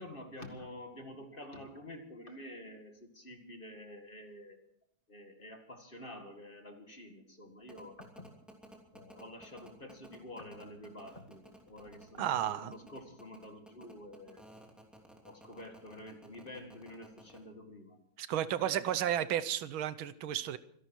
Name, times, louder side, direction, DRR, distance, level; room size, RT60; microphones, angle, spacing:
voice 1, 0.0-4.6 5.1-8.3 8.9-14.4 15.2-18.0 18.6-18.9, left 1 dB, 25° left, 5 dB, 2.0 m, -49 dB
sound 1, 7.7-17.4, equal, ahead, 2.8 m, -54 dB
voice 2, 12.2-12.7 18.2-20.6, right 11 dB, 80° right, 14 dB, 1.6 m, -32 dB
25.5 x 11.5 x 4.6 m, 0.67 s
omnidirectional pair, 2.2 m